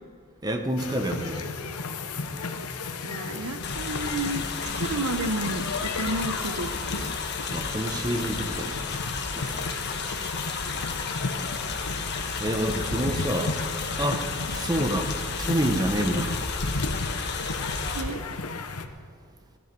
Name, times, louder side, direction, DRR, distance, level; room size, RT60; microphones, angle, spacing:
voice 1, 0.4-1.5 7.5-8.8 9.3-9.7 12.4-13.6 14.0-16.4, right 1 dB, 20° right, 6 dB, 1.0 m, -28 dB
sound 1, 0.8-18.9, left 3 dB, 80° left, 0.9 m, -34 dB
voice 2, 3.0-4.5 4.8-7.2 9.9-10.0 10.7-11.1 17.9-18.2, right 2 dB, 65° right, 9 dB, 0.9 m, -32 dB
sound 2, 3.6-18.0, left 5 dB, 50° left, 1.4 m, -32 dB
16.5 x 10.5 x 5.3 m, 2.2 s
head